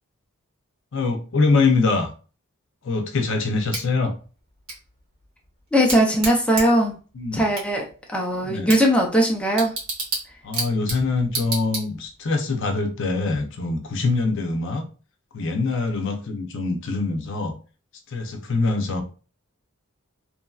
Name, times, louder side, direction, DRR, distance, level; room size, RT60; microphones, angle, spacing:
voice 1, 0.9-2.1 2.8-4.1 7.1-7.5 8.4-8.7 10.4-14.8 15.3-17.5 18.1-19.0, left 3 dB, 60° left, 5 dB, 0.6 m, -24 dB
Bicycle / Tick, 3.7-12.3, right 3 dB, 75° right, 1.3 m, -33 dB
voice 2, 5.7-7.0 7.3-9.7, equal, 5° left, -1 dB, 0.5 m, -20 dB
3.0 x 2.6 x 2.3 m, 0.36 s
head